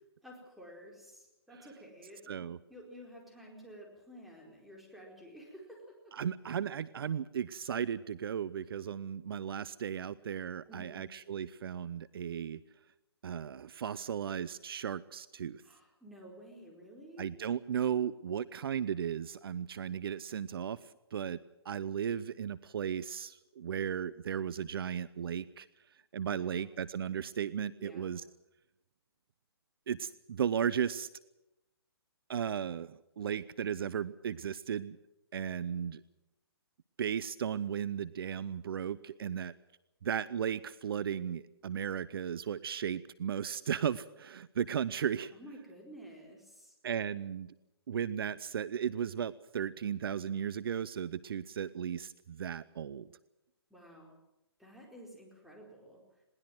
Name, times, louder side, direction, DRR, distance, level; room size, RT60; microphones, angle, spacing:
voice 1, 0.2-6.1 10.7-11.1 15.6-17.3 26.3-26.8 27.8-28.1 45.3-46.7 53.7-54.2 54.6-56.0, equal, ahead, -2 dB, 4.6 m, -52 dB
voice 2, 2.3-2.6 6.1-12.6 13.2-15.6 17.2-21.4 21.6-25.7 26.1-28.2 29.9-31.1 32.3-35.0 35.3-36.0 37.0-39.5 40.0-45.3 46.8-47.5 47.9-53.1, right 8 dB, 60° right, 18 dB, 0.7 m, -35 dB
21.0 x 18.5 x 7.8 m, 0.93 s
hypercardioid pair, 155°, 14 cm